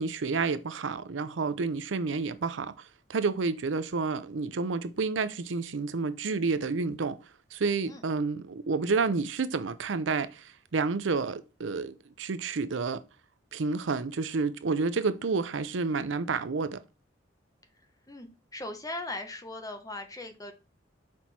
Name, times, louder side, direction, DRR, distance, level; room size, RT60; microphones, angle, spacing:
voice 1, 0.0-2.7 3.1-7.2 7.5-13.0 13.5-16.8, right 4 dB, 80° right, 0.6 m, -30 dB
voice 2, 18.1-20.5, left 2 dB, 20° left, 1.1 m, -39 dB
6.0 x 4.6 x 4.2 m
head